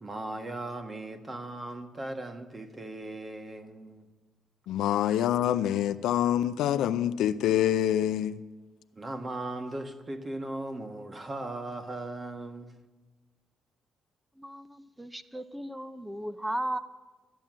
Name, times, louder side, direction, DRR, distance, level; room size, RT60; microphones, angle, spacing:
voice 1, 0.0-4.1 9.0-12.8, right 2 dB, 30° right, 1.3 m, -38 dB
voice 2, 4.7-8.4, left 11 dB, 85° left, 0.5 m, -26 dB
voice 3, 14.4-16.8, right 1 dB, 10° right, 0.6 m, -36 dB
13.0 x 9.2 x 7.4 m
cardioid pair, 90°, 0 cm